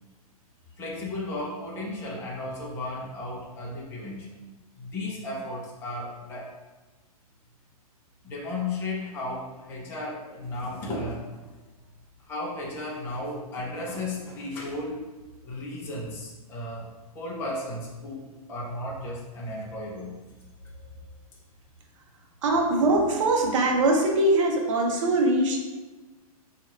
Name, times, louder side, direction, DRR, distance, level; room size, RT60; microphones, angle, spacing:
voice 1, 0.8-4.3 4.7-6.5 8.2-11.4 12.2-15.0 15.4-16.9 17.1-20.1 20.6-21.0, left 2 dB, 10° left, -4 dB, 0.6 m, -34 dB
voice 2, 22.4-25.6, right 2 dB, 55° right, 1 dB, 0.8 m, -22 dB
2.8 x 2.5 x 4.2 m, 1.2 s
hypercardioid pair, 155°, 19 cm